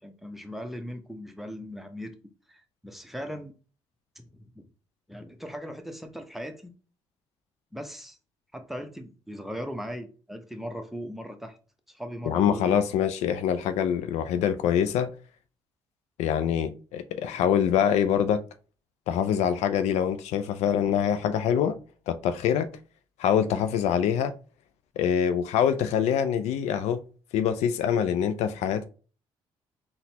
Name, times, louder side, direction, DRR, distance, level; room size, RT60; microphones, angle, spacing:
voice 1, 0.0-2.2 2.5-3.5 4.2-4.7 5.1-6.7 7.7-8.2 8.5-11.6 11.9-12.9, equal, ahead, 0.7 m, -39 dB
voice 2, 12.2-15.1 16.2-18.4 19.1-21.8 22.1-22.7 23.2-24.3 25.0-27.0 27.3-28.9, left 9 dB, 75° left, 0.4 m, -25 dB
3.9 x 2.2 x 2.8 m
supercardioid pair, 55°, 12 cm